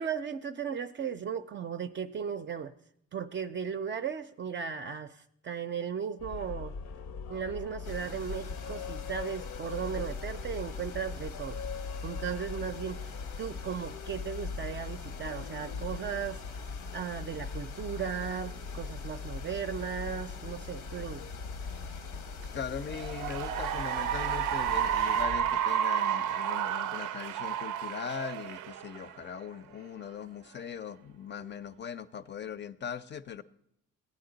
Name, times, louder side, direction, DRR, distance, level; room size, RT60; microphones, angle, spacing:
voice 1, 0.0-2.7 3.1-6.7 7.3-11.6 12.0-13.1 13.4-16.4 16.9-21.2 22.4-22.5, right 7 dB, 40° right, 8 dB, 0.5 m, -36 dB
sound 1, 6.2-25.5, left 5 dB, 70° left, 0.7 m, -40 dB
sound 2, 7.8-25.3, left 5 dB, 90° left, 1.0 m, -48 dB
voice 2, 22.5-33.4, left 7 dB, 35° left, 15 dB, 0.5 m, -40 dB
Cheering / Applause, 22.8-29.5, right 9 dB, 90° right, 0.5 m, -31 dB
15.5 x 9.5 x 3.9 m, 0.73 s
cardioid pair, 90°, 30 cm